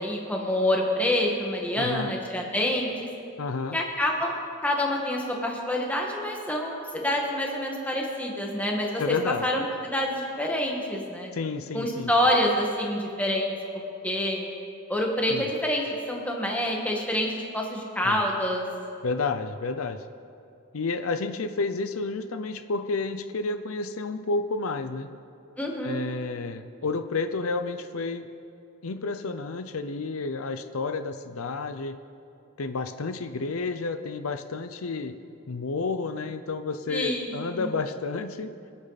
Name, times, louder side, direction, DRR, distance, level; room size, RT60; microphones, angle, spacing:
voice 1, 0.0-3.1 3.7-4.3 4.6-9.1 9.4-11.3 11.7-13.5 14.0-14.5 14.9-18.6 25.6-26.0 36.9-37.7, left 1 dB, 5° left, -1 dB, 1.7 m, -27 dB
voice 2, 1.8-2.1 3.4-3.8 9.0-9.4 11.3-12.1 15.3-15.5 18.0-18.2 19.0-20.0 20.7-25.1 25.8-28.3 28.8-32.0 32.6-35.1 35.5-38.5, left 3 dB, 85° left, 9 dB, 0.7 m, -30 dB
25.5 x 8.6 x 4.1 m, 2.7 s
head